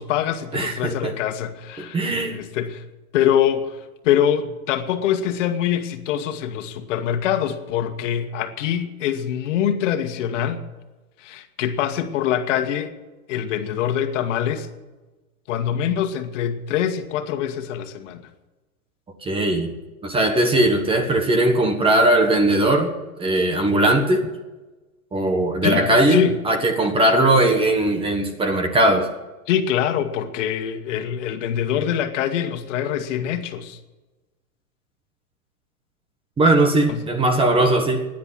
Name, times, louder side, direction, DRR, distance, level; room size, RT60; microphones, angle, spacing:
voice 1, 0.0-2.0 2.3-2.8 3.1-10.7 11.2-13.0 13.3-14.7 15.5-18.2 25.6-26.4 29.5-33.8 36.9-37.0, left 9 dB, 55° left, 7 dB, 1.9 m, -24 dB
voice 2, 0.5-1.1 1.8-2.4 19.2-19.7 20.0-22.9 23.2-24.3 25.1-29.1 36.4-38.1, right 1 dB, 10° right, 6 dB, 1.4 m, -19 dB
16.5 x 10.5 x 7.5 m, 1.1 s
supercardioid pair, 150°, 43 cm